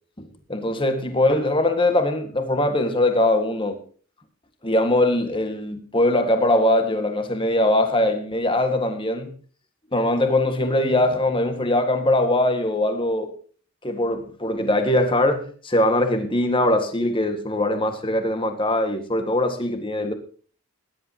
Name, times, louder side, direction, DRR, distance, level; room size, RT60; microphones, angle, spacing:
voice 1, 0.2-3.8 4.6-9.3 9.9-13.3 13.8-20.1, left 1 dB, 25° left, 1.8 m, -21 dB
19.5 x 11.0 x 3.0 m
head